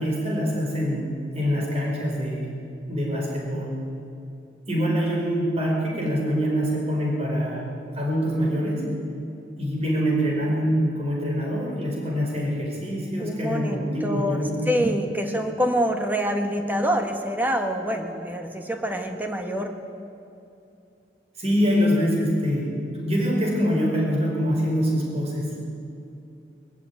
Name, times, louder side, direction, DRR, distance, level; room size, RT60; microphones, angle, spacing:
voice 1, 0.0-2.5 2.9-3.8 4.7-7.7 7.9-8.9 9.6-14.7 21.4-25.6, equal, 35° right, -1 dB, 5.0 m, -25 dB
voice 2, 13.2-19.8, equal, 10° right, 5 dB, 1.5 m, -26 dB
20.5 x 14.5 x 9.5 m, 2.7 s
head